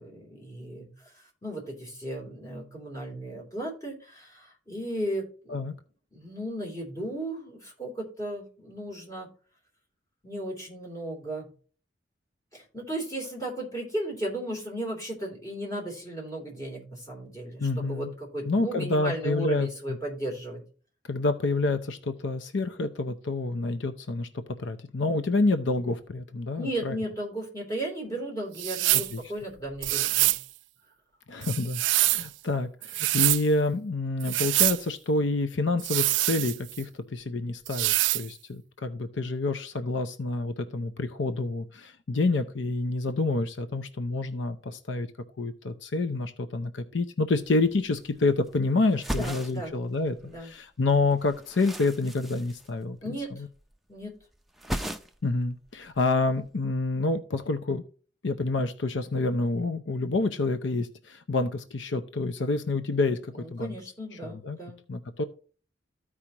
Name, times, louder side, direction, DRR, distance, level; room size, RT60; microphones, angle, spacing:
voice 1, 0.0-5.7 6.1-9.3 10.2-11.5 12.5-20.6 26.6-30.4 49.1-49.8 50.2-50.5 53.0-53.4 53.9-54.1 63.3-64.8, right 1 dB, 20° left, -2 dB, 3.2 m, -35 dB
voice 2, 17.6-18.1 18.4-20.0 21.1-27.0 28.9-29.2 31.3-45.1 45.4-53.1 55.2-57.8 58.2-63.7 64.2-64.6 64.9-65.2, left 3 dB, 75° left, 9 dB, 0.7 m, -28 dB
sound 1, 28.6-29.1 29.8-30.4 31.4-32.3 32.8-33.4 34.2-34.8 35.8-36.8 37.7-38.3, right 19 dB, 70° right, 0.3 m, -25 dB
sound 2, 47.3-47.4 47.7-48.5 48.9-50.5 50.8-53.3 53.6-54.1 54.3-55.4 55.7-56.5, equal, ahead, 0.6 m, -37 dB
14.5 x 4.9 x 2.9 m, 0.40 s
head